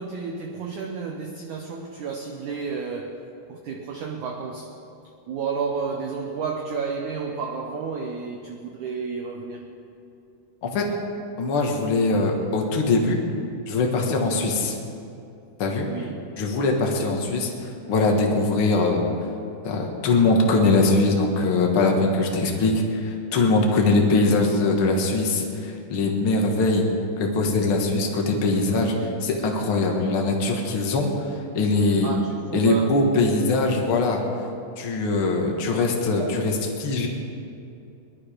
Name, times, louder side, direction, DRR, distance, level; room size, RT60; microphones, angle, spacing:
voice 1, 0.0-3.2 3.5-4.7 5.3-9.6 15.8-16.3 23.7-24.0 29.0-29.2 32.0-33.0 36.2-36.3, right 5 dB, 85° right, 2 dB, 1.7 m, -31 dB
voice 2, 11.4-13.2 13.7-14.8 15.6-15.9 16.4-19.0 19.6-26.9 27.2-28.9 29.2-31.1 31.5-32.1 32.5-34.2 34.8-37.1, left 3 dB, 60° left, 1 dB, 1.4 m, -22 dB
21.0 x 12.0 x 5.1 m, 2.7 s
omnidirectional pair, 4.8 m